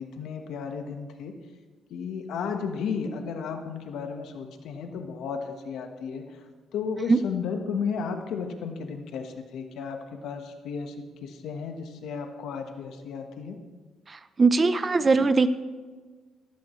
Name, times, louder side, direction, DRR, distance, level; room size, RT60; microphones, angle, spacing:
voice 1, 0.0-1.3 1.9-6.3 6.7-10.9 11.2-13.6, left 6 dB, 80° left, 6 dB, 1.3 m, -33 dB
voice 2, 14.1-15.5, right 4 dB, 30° right, 13 dB, 0.7 m, -21 dB
16.0 x 14.5 x 3.2 m, 1.4 s
cardioid pair, 90°, 0 cm